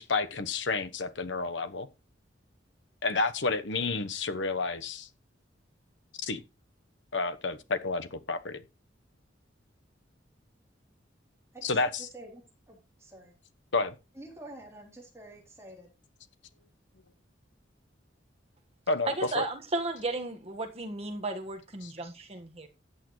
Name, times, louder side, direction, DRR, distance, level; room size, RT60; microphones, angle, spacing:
voice 1, 0.0-1.9 3.0-5.1 6.2-6.4 7.1-8.6 11.6-12.0 13.7-13.9 18.9-19.5 21.8-21.9, left 3 dB, 80° left, 1.1 m, -30 dB
voice 2, 11.5-13.3 14.1-15.9, right 1 dB, 15° right, 3.5 m, -48 dB
voice 3, 19.1-22.7, right 2 dB, 35° right, 1.6 m, -34 dB
13.5 x 8.6 x 3.2 m
head